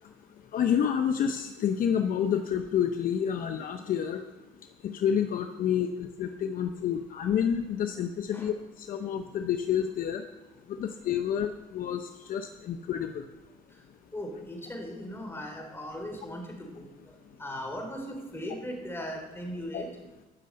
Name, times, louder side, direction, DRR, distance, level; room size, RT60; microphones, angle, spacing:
voice 1, 0.5-4.2 4.9-8.5 8.9-10.2 10.8-12.0 12.3-13.1 19.7-19.8, left 8 dB, 55° left, 7 dB, 0.8 m, -28 dB
voice 2, 14.1-19.9, equal, 15° left, 2 dB, 4.0 m, -39 dB
13.5 x 6.8 x 7.8 m, 1.1 s
cardioid pair, 110°, 17 cm